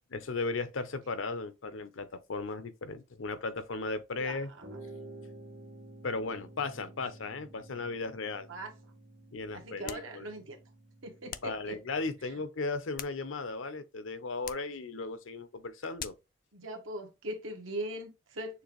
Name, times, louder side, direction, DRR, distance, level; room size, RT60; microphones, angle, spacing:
voice 1, 0.1-4.5 6.0-8.5 9.3-10.3 11.4-16.1, left 3 dB, 75° left, 0.7 m, -36 dB
voice 2, 4.2-4.6 8.5-8.7 9.5-10.6 11.0-11.8 12.2-12.4 16.5-18.6, right 1 dB, 80° right, 1.3 m, -40 dB
sound 1, 4.6-12.3, right 2 dB, 60° right, 1.8 m, -51 dB
sound 2, 9.8-10.2 11.3-11.6 12.7-13.6 14.4-14.8 16.0-16.3, left 10 dB, 45° left, 0.4 m, -44 dB
6.6 x 2.6 x 3.1 m
head